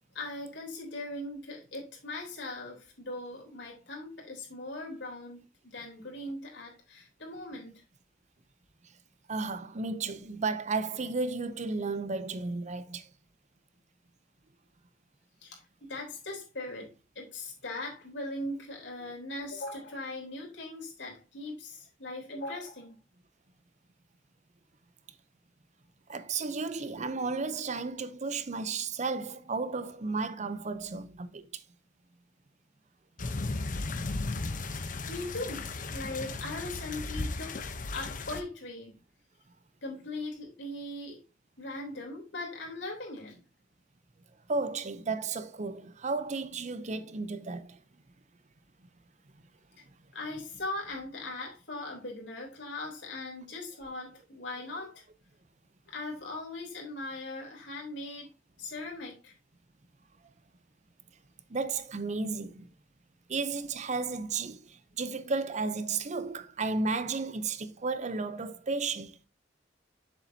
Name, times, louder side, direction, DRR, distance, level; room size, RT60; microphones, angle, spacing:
voice 1, 0.1-7.8 15.4-23.0 35.1-38.9 39.8-41.2 41.6-43.4 49.8-49.9 50.1-55.0 55.9-58.3 58.6-59.3, left 2 dB, 85° left, 3.5 m, -40 dB
voice 2, 9.3-13.1 26.1-31.6 44.5-47.8 61.5-62.7 63.3-69.2, right 4 dB, 40° right, 0.6 m, -33 dB
sound 1, 33.2-38.4, left 3 dB, 45° left, 0.8 m, -35 dB
7.2 x 7.1 x 2.7 m
head